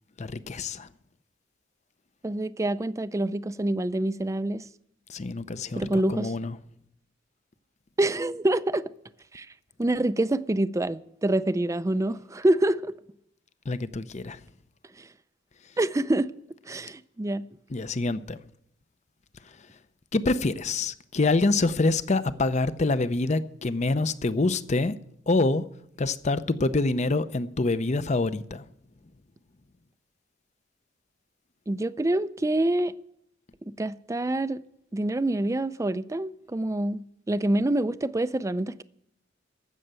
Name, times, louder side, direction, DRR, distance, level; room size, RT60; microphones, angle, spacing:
voice 1, 0.2-0.9 5.1-6.6 13.6-14.5 15.6-15.7 17.7-18.4 19.4-19.8 20.1-24.9 25.3-25.7 26.0-28.7, left 3 dB, 35° left, 0.6 m, -26 dB
voice 2, 2.2-4.6 5.8-6.3 8.0-8.9 9.3-9.5 9.8-12.9 15.0-15.1 15.8-16.3 16.7-17.4 31.7-32.9 33.7-34.6 34.9-38.8, right 1 dB, 15° right, 0.4 m, -26 dB
15.0 x 6.6 x 8.9 m
head